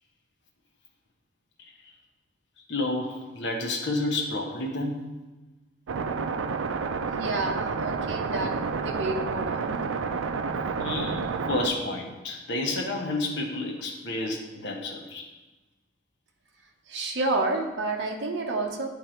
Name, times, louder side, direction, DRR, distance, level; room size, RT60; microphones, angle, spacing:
voice 1, 2.7-5.0 10.8-15.3, left 2 dB, 60° left, 1 dB, 1.0 m, -30 dB
sound 1, 5.9-11.7, right 5 dB, 80° right, 0.4 m, -30 dB
voice 2, 7.2-9.8 16.9-18.9, right 2 dB, 60° right, 1 dB, 0.8 m, -30 dB
9.1 x 3.4 x 4.4 m, 1.2 s
head